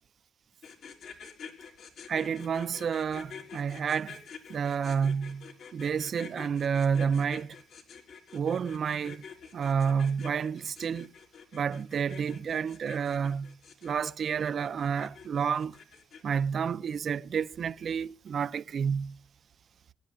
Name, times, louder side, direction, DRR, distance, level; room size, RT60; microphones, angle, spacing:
sound 1, 0.6-16.4, left 6 dB, 70° left, 3.8 m, -48 dB
voice 1, 2.1-4.2 4.5-5.5 5.7-7.6 8.3-9.2 9.5-11.1 11.5-13.5 13.8-15.8 16.2-19.2, right 7 dB, 55° right, 0.7 m, -30 dB
25.5 x 10.5 x 2.5 m
cardioid pair, 90°, 0 cm